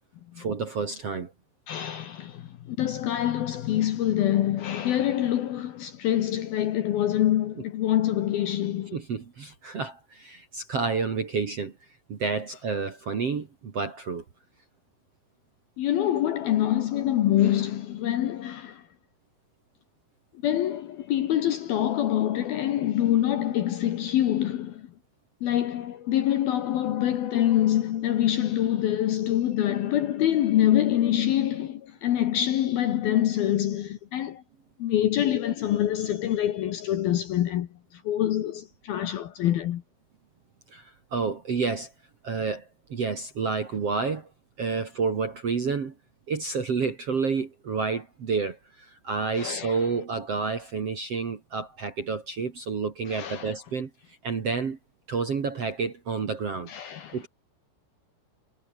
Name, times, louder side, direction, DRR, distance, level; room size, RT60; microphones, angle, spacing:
voice 1, 0.4-1.3 8.9-11.7 12.1-14.2 40.7-41.9 42.2-44.3 44.6-45.9 46.3-53.9 54.2-54.8 55.1-56.7 57.1-57.3, right 5 dB, 45° right, 2.3 m, -29 dB
voice 2, 1.7-9.0 15.8-18.8 20.4-24.9 25.4-34.4 34.8-39.8 49.4-49.8 53.1-53.5 56.7-57.2, left 12 dB, 65° left, 2.6 m, -25 dB
omnidirectional pair, 5.6 m